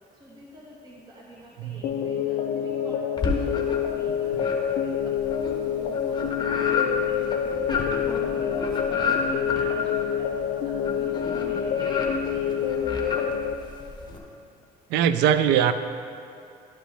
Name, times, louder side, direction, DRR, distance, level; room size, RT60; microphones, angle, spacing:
voice 1, 0.1-5.1 5.6-13.3, equal, 25° right, -5 dB, 1.3 m, -46 dB
sound 1, 1.8-13.5, left 8 dB, 80° left, 0.5 m, -27 dB
sound 2, 3.2-4.0 4.4-14.2, left 4 dB, 25° left, 1.0 m, -31 dB
voice 2, 14.9-15.7, right 9 dB, 85° right, 11 dB, 0.4 m, -20 dB
11.5 x 5.2 x 3.3 m, 2.6 s
cardioid pair, 110°, 17 cm